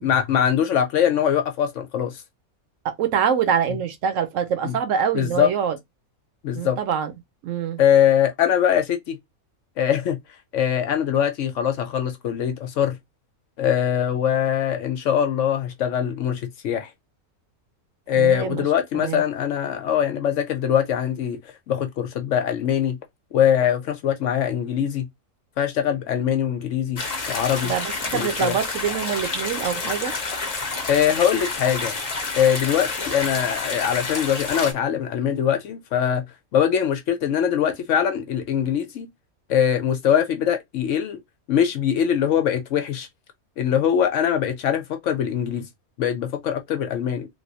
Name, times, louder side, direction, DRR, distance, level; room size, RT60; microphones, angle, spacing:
voice 1, 0.0-2.2 4.6-4.7 5.1-5.5 6.4-6.8 7.8-9.2 9.8-10.2 10.5-13.0 13.6-16.9 18.1-21.4 21.7-23.0 23.3-25.1 25.6-27.0 27.3-27.7 28.1-28.6 30.9-31.9 32.4-36.2 36.5-39.1 39.5-41.2 41.5-43.1 43.6-45.7 46.0-47.3, left 9 dB, 70° left, 0.8 m, -22 dB
voice 2, 2.8-5.7 6.5-7.1 7.4-7.8 18.1-18.7 19.0-19.2 27.6-30.1, right 7 dB, 70° right, 0.9 m, -25 dB
sound 1, 27.0-34.7, left 3 dB, 35° left, 0.7 m, -29 dB
3.2 x 2.6 x 2.7 m
omnidirectional pair, 1.5 m